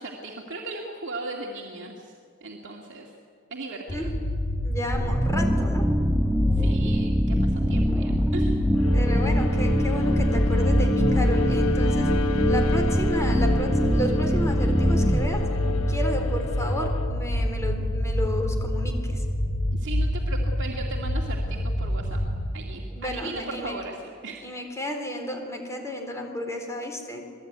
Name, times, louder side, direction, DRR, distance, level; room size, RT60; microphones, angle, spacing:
voice 1, 0.0-2.1 2.4-3.1 3.5-4.1 6.5-8.6 19.7-22.2 22.5-24.5, right 2 dB, 60° right, -1 dB, 2.3 m, -37 dB
sound 1, 3.9-22.5, left 1 dB, 45° left, 2.2 m, -27 dB
voice 2, 4.6-5.9 8.9-12.1 12.5-15.4 15.9-19.2 22.9-23.8 24.4-27.2, left 1 dB, 15° left, 3 dB, 4.1 m, -32 dB
sound 2, 4.9-16.7, equal, 5° right, 0.6 m, -24 dB
Bowed string instrument, 8.8-17.2, left 2 dB, 70° left, 1.2 m, -31 dB
27.5 x 20.0 x 9.7 m, 2.4 s
head